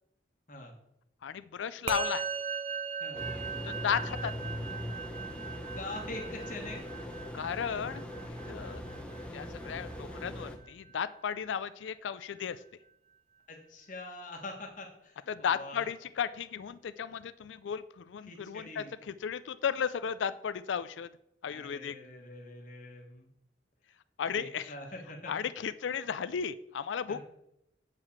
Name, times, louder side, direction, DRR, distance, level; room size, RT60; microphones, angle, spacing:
voice 1, 1.2-2.3 3.6-4.3 7.3-8.8 9.3-12.6 15.3-21.1 21.4-22.0 24.2-24.7 25.3-27.2, left 7 dB, 90° left, 14 dB, 0.4 m, -35 dB
Musical instrument, 1.9-11.4, right 6 dB, 35° right, 0.6 m, -40 dB
sound 1, 3.1-10.6, equal, 5° left, 0.9 m, -41 dB
voice 2, 5.7-6.8 13.5-15.9 18.2-18.9 21.5-23.3 24.4-25.3 27.1-27.2, left 2 dB, 45° left, 1 dB, 1.4 m, -44 dB
7.5 x 4.9 x 7.2 m, 0.81 s
head